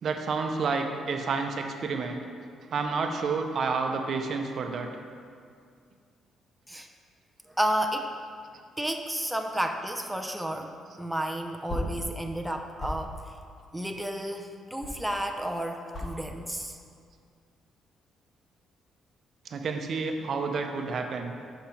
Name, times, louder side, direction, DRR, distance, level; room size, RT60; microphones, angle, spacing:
voice 1, 0.0-2.2 2.7-4.9 19.5-21.3, right 4 dB, 55° right, 4 dB, 0.6 m, -30 dB
voice 2, 7.6-8.1 8.8-13.2 13.7-16.8, right 1 dB, 5° right, 3 dB, 0.5 m, -31 dB
sound 1, 11.6-15.5 15.8-16.2 16.5-17.0 17.4-17.8, left 1 dB, 40° left, 1.7 m, -37 dB
6.9 x 5.1 x 4.5 m, 2.2 s
cardioid pair, 90°, 0 cm